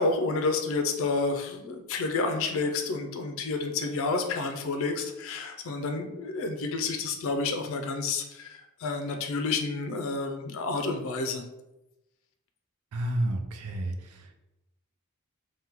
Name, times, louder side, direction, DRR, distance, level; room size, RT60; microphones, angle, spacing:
voice 1, 0.0-11.4, left 3 dB, 65° left, 5 dB, 0.4 m, -30 dB
voice 2, 12.9-14.3, right 1 dB, 80° right, 5 dB, 0.3 m, -31 dB
2.9 x 2.1 x 3.5 m, 0.95 s
head